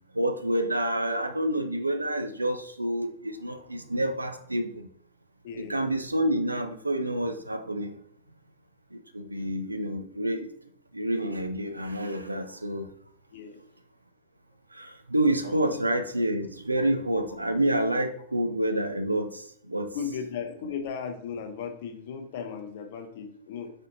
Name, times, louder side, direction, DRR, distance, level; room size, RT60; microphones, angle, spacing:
voice 1, 0.1-4.9 5.6-7.9 8.9-10.5 10.9-12.9 14.7-20.0, right 1 dB, 85° right, 8 dB, 0.3 m, -28 dB
voice 2, 5.4-5.9 13.3-13.6 15.4-15.8 19.9-23.7, left 7 dB, 55° left, 6 dB, 0.5 m, -36 dB
4.1 x 2.5 x 2.7 m, 0.64 s
figure-of-eight pair, 90°, 0 cm